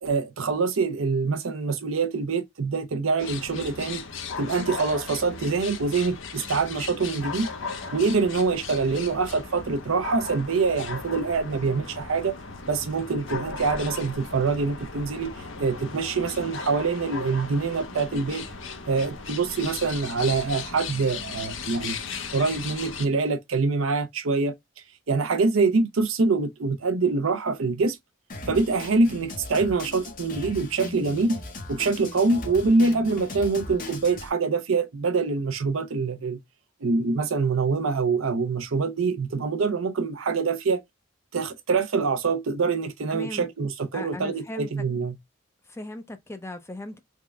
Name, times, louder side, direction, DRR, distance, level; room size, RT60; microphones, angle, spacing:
voice 1, 0.0-4.0 4.4-7.5 7.9-12.3 12.7-15.3 15.6-18.4 18.8-22.0 22.3-24.5 25.1-28.0 28.5-31.4 31.7-36.4 36.8-40.8 41.3-45.2, right 4 dB, 90° right, 0.6 m, -25 dB
sound 1, 3.2-23.1, left 5 dB, 70° left, 0.7 m, -37 dB
Drum kit, 28.3-34.3, left 2 dB, 40° left, 0.9 m, -38 dB
voice 2, 43.1-43.5 43.9-44.7 45.7-47.0, left 1 dB, 15° left, 0.5 m, -37 dB
3.6 x 2.1 x 3.4 m
head